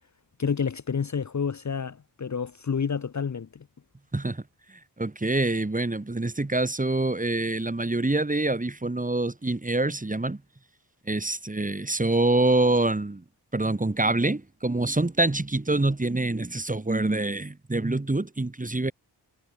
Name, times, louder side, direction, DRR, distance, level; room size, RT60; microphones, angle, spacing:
voice 1, 0.4-3.7, left 6 dB, 40° left, 0.8 m, -29 dB
voice 2, 4.1-4.4 5.0-10.4 11.1-13.2 13.5-18.9, right 2 dB, 20° right, 1.8 m, -25 dB
wide cardioid pair, 70°, 42 cm